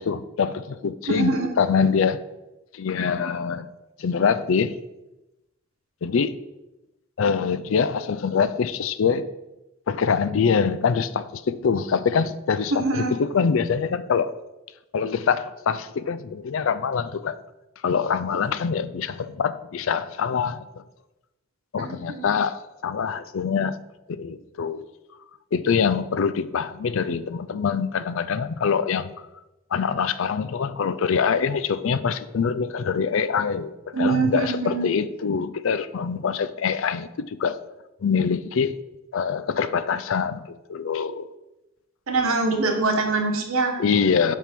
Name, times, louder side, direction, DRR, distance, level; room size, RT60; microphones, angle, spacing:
voice 1, 0.0-2.2 2.7-3.7 4.0-4.7 6.0-6.4 7.2-9.3 9.9-14.3 14.9-17.4 17.8-20.8 21.7-23.8 24.1-24.9 25.5-29.1 29.7-37.6 38.0-38.8 39.1-41.3 43.8-44.4, left 6 dB, 70° left, 14 dB, 0.4 m, -24 dB
voice 2, 1.1-1.5 12.7-13.1 21.8-22.3 33.9-34.9 42.1-44.0, right 3 dB, 80° right, 3 dB, 1.2 m, -24 dB
7.3 x 3.5 x 5.9 m, 0.97 s
head